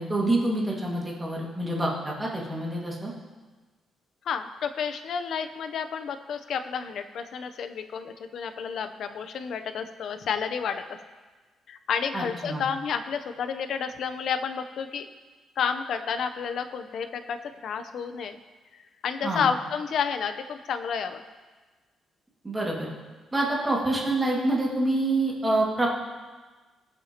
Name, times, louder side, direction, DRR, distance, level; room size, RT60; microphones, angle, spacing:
voice 1, 0.0-3.1 12.1-12.6 19.2-19.4 22.4-22.9 23.3-25.9, right 2 dB, 15° right, -3 dB, 2.0 m, -26 dB
voice 2, 4.2-11.0 11.7-15.1 15.6-18.4 19.0-21.2, left 6 dB, 55° left, 8 dB, 0.7 m, -30 dB
21.0 x 7.1 x 3.0 m, 1.3 s
cardioid pair, 165°, 0 cm